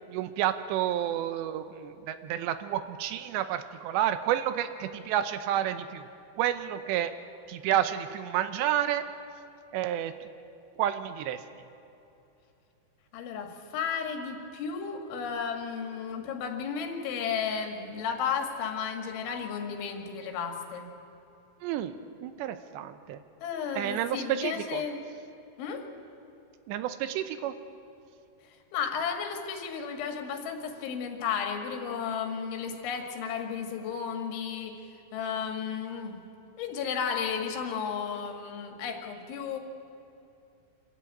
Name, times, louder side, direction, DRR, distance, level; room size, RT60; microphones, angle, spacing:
voice 1, 0.1-6.1 6.4-7.1 7.5-9.1 9.7-10.3 10.8-11.4 21.6-23.2 23.8-24.8 26.7-27.5, right 11 dB, 80° right, 11 dB, 2.8 m, -30 dB
voice 2, 13.1-20.9 23.4-25.0 25.6-25.8 28.7-34.8 35.1-36.2 36.6-39.6, left 6 dB, 90° left, 4 dB, 4.3 m, -33 dB
26.0 x 13.5 x 9.0 m, 2.8 s
omnidirectional pair, 5.3 m